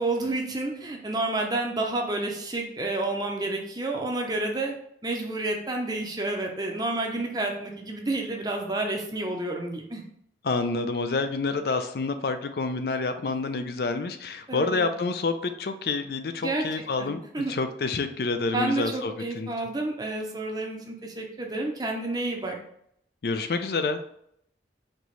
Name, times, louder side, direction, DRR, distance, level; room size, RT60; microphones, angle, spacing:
voice 1, 0.0-4.7 5.0-10.0 14.5-14.9 16.4-17.5 18.5-22.6, right 2 dB, 20° right, 1 dB, 0.6 m, -30 dB
voice 2, 10.4-19.7 23.2-24.0, left 3 dB, 60° left, 8 dB, 0.4 m, -28 dB
4.3 x 2.9 x 3.1 m, 0.71 s
head